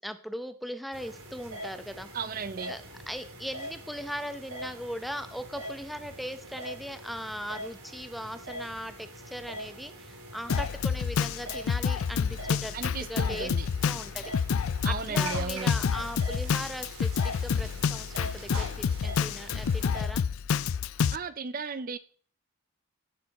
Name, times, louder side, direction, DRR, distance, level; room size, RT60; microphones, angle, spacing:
voice 1, 0.0-2.1 2.7-2.8 3.1-12.7 13.1-13.5 13.8-14.3 14.8-20.2, equal, ahead, 0.6 m, -39 dB
sound 1, 0.9-20.0, right 1 dB, 85° right, 3.2 m, -43 dB
voice 2, 2.1-2.7 12.7-13.7 14.8-15.7 21.1-22.0, right 5 dB, 40° right, 0.5 m, -35 dB
Drum kit, 10.5-21.2, left 6 dB, 75° left, 0.4 m, -28 dB
16.0 x 6.8 x 4.2 m
head